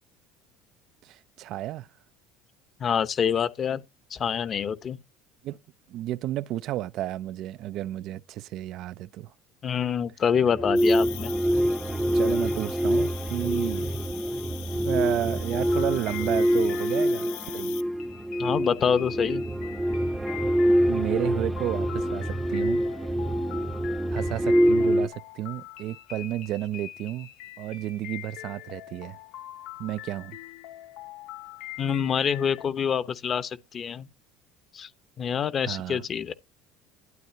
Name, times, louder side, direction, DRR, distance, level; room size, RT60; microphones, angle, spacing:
voice 1, 1.0-1.9 5.4-5.6 5.9-9.3 12.1-14.0 14.9-17.7 20.9-22.8 24.1-27.3 27.6-29.2 29.8-30.4 35.6-36.1, right 14 dB, 60° right, 0.4 m, -32 dB
voice 2, 2.8-3.8 4.1-5.0 9.6-11.3 18.4-19.4 31.8-34.1 34.7-34.9 35.2-36.3, left 7 dB, 35° left, 0.9 m, -26 dB
sound 1, 10.4-25.1, equal, 10° right, 0.7 m, -25 dB
Cricket, 10.8-17.8, left 14 dB, 90° left, 0.9 m, -43 dB
sound 2, 15.5-32.7, left 15 dB, 70° left, 1.2 m, -43 dB
12.0 x 9.4 x 2.8 m
cardioid pair, 120°, 0 cm